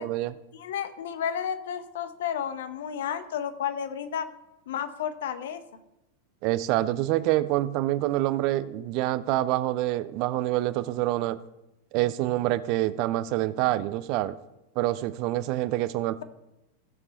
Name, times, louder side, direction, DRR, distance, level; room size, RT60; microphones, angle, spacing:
voice 1, 0.0-0.3 6.4-11.4 11.9-14.3 14.8-16.2, right 15 dB, 45° right, 16 dB, 0.5 m, -26 dB
voice 2, 0.5-4.3 4.7-5.6, left 8 dB, 60° left, 11 dB, 0.8 m, -32 dB
15.5 x 6.8 x 4.0 m, 0.92 s
figure-of-eight pair, 90°, 0 cm